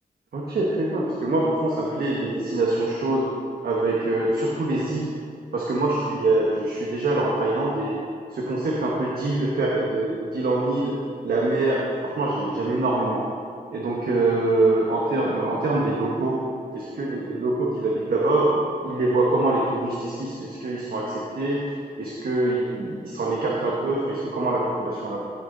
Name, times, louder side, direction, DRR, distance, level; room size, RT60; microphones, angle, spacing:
voice 1, 0.3-3.3 3.6-5.1 5.5-8.0 8.3-11.0 11.2-13.3 13.7-16.4 16.7-21.6 22.0-25.2, right 2 dB, 80° right, -4 dB, 1.4 m, -24 dB
15.0 x 6.4 x 4.0 m, 2.3 s
wide cardioid pair, 165°, 16 cm